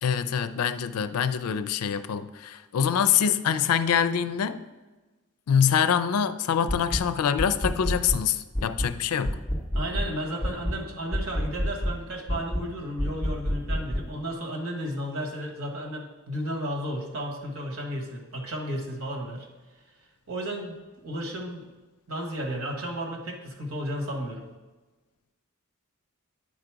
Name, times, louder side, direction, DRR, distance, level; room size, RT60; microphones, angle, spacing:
voice 1, 0.0-4.6 5.5-9.4, left 8 dB, 85° left, 0.4 m, -25 dB
sound 1, 6.7-7.1 7.4-8.2 8.5-9.0 9.2-10.1 10.4-10.8 11.1-12.0 12.3-12.7 13.0-14.1, equal, 5° left, 0.6 m, -28 dB
voice 2, 9.7-19.5 20.3-20.8 21.0-21.7 22.1-24.5, equal, 70° right, 1.4 m, -33 dB
9.2 x 3.9 x 4.7 m
head